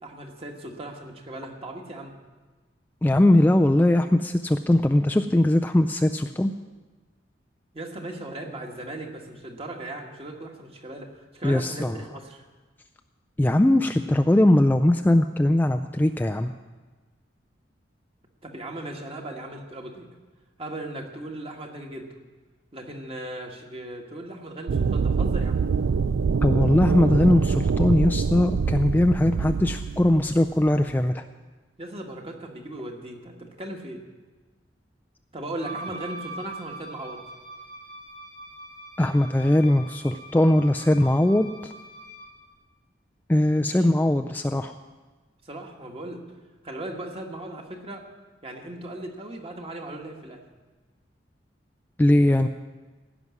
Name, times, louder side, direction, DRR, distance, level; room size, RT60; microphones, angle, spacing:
voice 1, 0.0-2.1 7.7-12.4 18.4-20.1 20.6-22.1 22.7-25.6 31.8-34.0 35.3-37.2 43.7-43.9 45.4-46.2 46.6-48.0 48.4-50.4, right 1 dB, 30° right, 2 dB, 1.6 m, -37 dB
voice 2, 3.0-6.5 11.4-12.0 13.4-16.5 26.4-31.2 39.0-41.7 43.3-44.7 52.0-52.5, left 1 dB, 10° left, 5 dB, 0.3 m, -20 dB
sound 1, 24.7-31.0, right 5 dB, 85° right, 0.4 m, -25 dB
Wind instrument woodwind instrument, 35.6-42.4, right 1 dB, 60° right, 4.5 m, -42 dB
16.5 x 6.1 x 9.5 m, 1.3 s
head